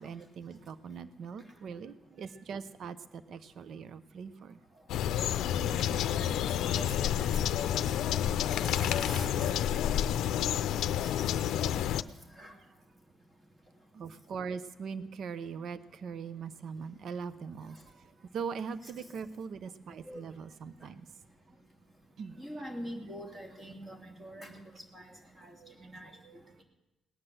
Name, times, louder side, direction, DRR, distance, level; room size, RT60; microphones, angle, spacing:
voice 1, 0.0-4.6 13.9-21.0 22.2-22.4 25.5-26.4, right 6 dB, 60° right, 13 dB, 0.7 m, -41 dB
sound 1, 4.9-12.0, left 10 dB, 85° left, 0.5 m, -29 dB
voice 2, 5.6-8.2 8.6-10.0 10.4-10.6 11.5-11.6 12.4-12.5 20.1-20.2 22.3-24.5 24.9-25.0 25.4-25.5 25.8-26.1, equal, 20° right, 2 dB, 2.9 m, -45 dB
18.5 x 9.8 x 7.7 m, 0.96 s
cardioid pair, 120°, 0 cm